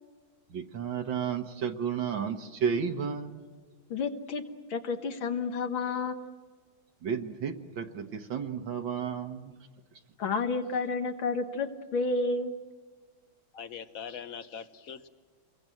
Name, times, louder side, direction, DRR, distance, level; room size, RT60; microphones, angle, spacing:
voice 1, 0.5-3.4 7.0-9.6, right 7 dB, 70° right, 5 dB, 2.0 m, -32 dB
voice 2, 3.9-4.4 4.7-6.3 10.2-12.6, left 3 dB, 75° left, 6 dB, 2.2 m, -30 dB
voice 3, 13.5-15.1, left 7 dB, 50° left, 11 dB, 1.2 m, -42 dB
28.5 x 22.5 x 7.7 m, 1.5 s
omnidirectional pair, 2.2 m